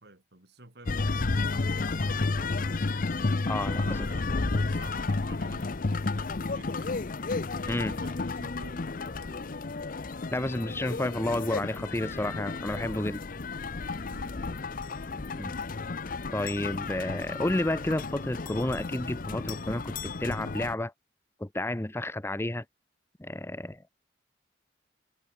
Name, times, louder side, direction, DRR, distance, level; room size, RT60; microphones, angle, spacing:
voice 1, 0.0-2.8 3.6-7.0 7.9-9.6 14.1-14.4, right 2 dB, 65° right, 4.4 m, -50 dB
sound 1, 0.9-20.7, left 3 dB, 50° left, 0.7 m, -32 dB
voice 2, 3.5-3.8 7.7-8.0 10.3-13.2 15.4-15.5 16.3-20.9 21.4-22.6 23.2-23.8, left 1 dB, 15° left, 0.8 m, -31 dB
head